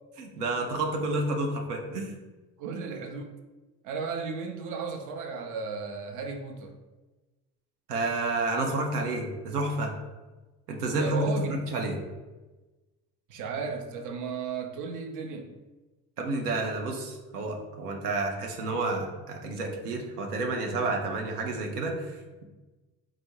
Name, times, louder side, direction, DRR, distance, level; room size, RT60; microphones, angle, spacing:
voice 1, 0.2-2.1 7.9-9.9 10.7-12.0 16.2-22.5, right 2 dB, 75° right, 2 dB, 0.7 m, -30 dB
voice 2, 2.6-3.3 3.8-6.8 10.9-11.7 13.3-15.6, right 5 dB, 40° right, 4 dB, 0.7 m, -35 dB
4.2 x 2.1 x 4.5 m, 1.2 s
figure-of-eight pair, 55°, 46 cm